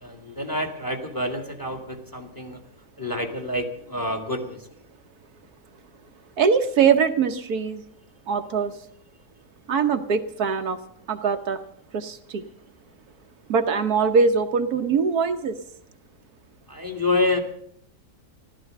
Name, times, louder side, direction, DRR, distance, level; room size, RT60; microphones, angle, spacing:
voice 1, 0.0-2.6 3.0-4.6 16.7-17.4, left 2 dB, 15° left, 5 dB, 1.8 m, -27 dB
voice 2, 6.4-7.8 8.3-8.7 9.7-10.8 11.1-11.6 11.9-12.4 13.5-15.5, right 5 dB, 70° right, 7 dB, 1.4 m, -22 dB
15.0 x 12.5 x 7.6 m, 0.66 s
omnidirectional pair, 1.7 m